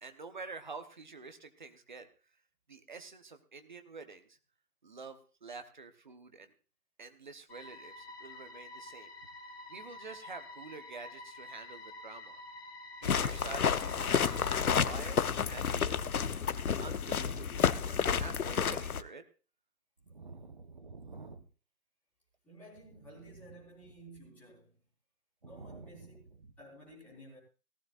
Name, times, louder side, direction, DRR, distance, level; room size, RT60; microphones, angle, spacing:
voice 1, 0.0-2.1 2.7-4.4 4.8-6.5 7.0-9.1 9.7-12.4 13.0-16.3 16.8-19.2 20.1-21.5 25.4-26.5, right 4 dB, 30° right, 8 dB, 1.0 m, -48 dB
sound 1, 7.5-14.8, left 2 dB, 40° left, 3.0 m, -49 dB
sound 2, 13.0-19.0, left 7 dB, 65° left, 0.9 m, -30 dB
voice 2, 22.4-24.9 25.4-26.3 26.6-27.4, right 1 dB, 5° left, -9 dB, 4.1 m, -54 dB
18.5 x 15.0 x 2.5 m, 0.35 s
hypercardioid pair, 170°, 46 cm